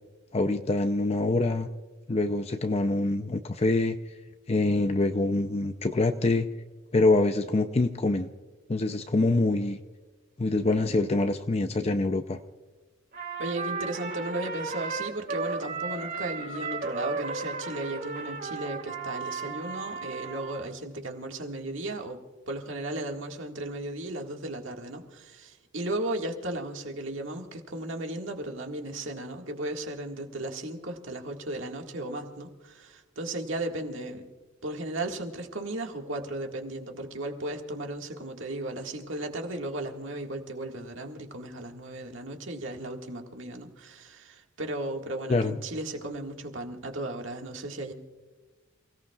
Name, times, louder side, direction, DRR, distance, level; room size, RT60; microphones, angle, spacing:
voice 1, 0.3-1.7 2.1-4.0 4.5-6.5 6.9-8.3 8.7-9.8 10.4-12.4 45.3-45.6, left 2 dB, 30° left, 7 dB, 0.6 m, -25 dB
Trumpet, 13.1-20.7, right 4 dB, 50° right, 4.2 m, -35 dB
voice 2, 13.4-22.2 22.5-34.3 34.6-47.9, right 1 dB, 70° right, 3 dB, 1.9 m, -35 dB
28.5 x 17.5 x 2.4 m, 1.3 s
head